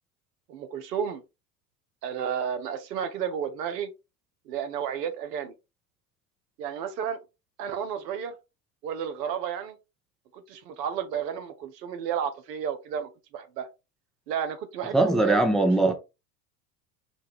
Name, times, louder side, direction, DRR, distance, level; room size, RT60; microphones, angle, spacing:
voice 1, 0.5-1.2 2.0-3.9 4.5-5.5 6.6-7.2 7.6-8.3 8.8-9.8 10.3-13.7 14.3-15.9, right 8 dB, 75° right, 0.9 m, -32 dB
voice 2, 14.9-15.9, right 2 dB, ahead, 0.6 m, -21 dB
5.0 x 2.3 x 3.3 m
hypercardioid pair, 85°, 49 cm